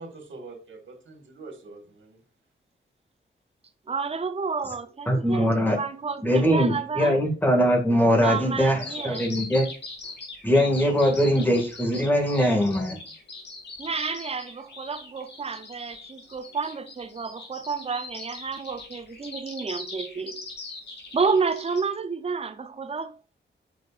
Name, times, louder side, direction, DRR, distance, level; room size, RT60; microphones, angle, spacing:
voice 1, 0.0-2.2, right 3 dB, 85° right, 2.0 m, -44 dB
voice 2, 3.9-7.1 8.2-9.2 13.8-20.5 21.1-23.2, right 5 dB, 30° right, 0.7 m, -30 dB
voice 3, 5.1-5.8 6.2-9.7 10.4-13.0, equal, 10° left, 2.2 m, -22 dB
Bird vocalization bird call bird song, 8.8-21.8, left 3 dB, 65° left, 2.6 m, -41 dB
8.1 x 6.2 x 2.6 m
wide cardioid pair, 135°, 19 cm